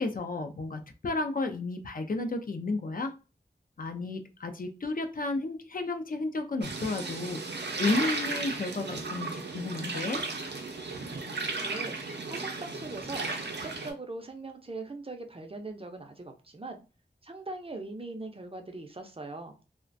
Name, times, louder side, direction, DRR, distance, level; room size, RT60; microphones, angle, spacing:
voice 1, 0.0-3.1 3.8-10.2, left 3 dB, 55° left, 6 dB, 0.4 m, -32 dB
sound 1, 6.6-13.9, right 3 dB, 85° right, 0.5 m, -35 dB
voice 2, 11.6-12.0 12.3-16.8 17.2-19.6, right 2 dB, 35° right, 4 dB, 0.4 m, -41 dB
2.3 x 2.1 x 2.5 m, 0.32 s
wide cardioid pair, 45°, 17 cm